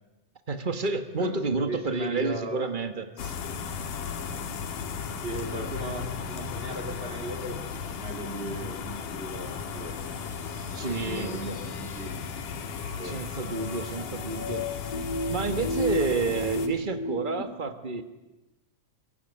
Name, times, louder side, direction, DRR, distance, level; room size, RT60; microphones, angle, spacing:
voice 1, 0.5-3.3 10.7-11.4 13.0-14.9 15.3-18.0, right 3 dB, 80° right, 7 dB, 0.4 m, -30 dB
voice 2, 1.2-2.7 5.2-12.4 12.9-13.2, right 1 dB, 15° right, 3 dB, 3.8 m, -38 dB
sound 1, 3.2-16.7, left 6 dB, 80° left, 3.5 m, -36 dB
sound 2, 9.3-17.4, equal, 50° left, 5.4 m, -35 dB
23.5 x 23.5 x 10.0 m, 1.0 s
omnidirectional pair, 3.7 m